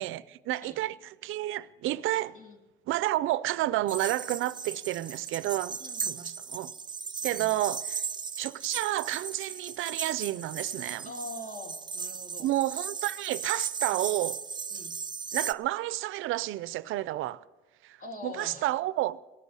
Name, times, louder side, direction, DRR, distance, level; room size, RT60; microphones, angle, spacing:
voice 1, 0.0-2.4 2.9-6.7 7.2-8.0 8.4-11.1 12.4-14.4 15.3-17.4 17.8-18.0 18.2-19.2, right 15 dB, 85° right, 0.5 m, -30 dB
sound 1, 3.9-15.5, right 6 dB, 20° right, 0.4 m, -36 dB
voice 2, 5.8-6.3 7.3-7.5 11.0-12.5 13.9-14.2 14.7-14.9 18.0-18.7, left 2 dB, 40° left, 2.8 m, -44 dB
17.5 x 8.3 x 9.5 m
cardioid pair, 90°, 20 cm